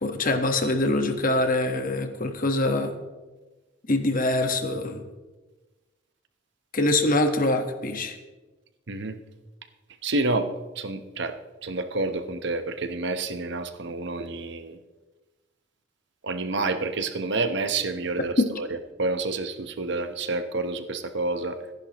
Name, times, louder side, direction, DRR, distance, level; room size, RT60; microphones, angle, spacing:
voice 1, 0.0-3.0 3.9-5.0 6.7-8.2 18.4-18.5, left 2 dB, 50° left, 6 dB, 1.4 m, -24 dB
voice 2, 8.9-9.2 10.0-11.4 11.6-14.8 16.2-18.7 19.0-21.6, right 3 dB, 65° right, 8 dB, 1.0 m, -29 dB
25.0 x 10.5 x 3.0 m, 1.2 s
head